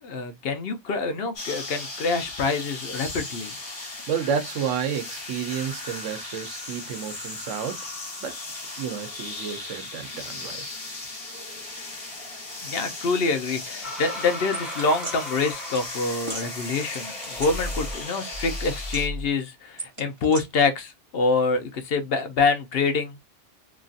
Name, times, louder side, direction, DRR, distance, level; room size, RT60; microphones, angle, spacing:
voice 1, 0.0-3.5 12.6-23.2, left 4 dB, 60° left, 0.8 m, -26 dB
sound 1, 1.4-19.1, left 2 dB, 45° left, 1.6 m, -37 dB
voice 2, 4.1-7.8 8.2-8.3 8.8-10.6, right 8 dB, 85° right, 1.1 m, -30 dB
sound 2, 13.8-18.9, left 1 dB, ahead, 1.0 m, -38 dB
sound 3, 14.5-15.2 15.7-15.9 16.2-16.5 16.9-18.0 18.3-19.3 19.8-20.4, equal, 25° right, 1.0 m, -34 dB
3.0 x 2.5 x 2.4 m
omnidirectional pair, 1.2 m